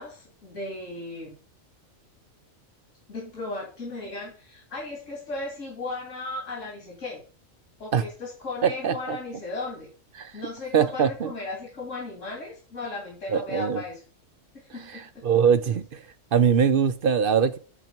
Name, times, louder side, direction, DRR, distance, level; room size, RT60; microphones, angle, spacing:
voice 1, 0.0-1.3 3.1-7.2 7.8-9.9 10.3-14.0 14.5-15.2, left 2 dB, 80° left, 2.9 m, -36 dB
voice 2, 8.6-9.2 10.2-10.4 10.7-11.3 13.3-13.8 14.9-17.6, right 7 dB, 55° right, 0.7 m, -23 dB
8.2 x 4.5 x 7.1 m
omnidirectional pair, 1.3 m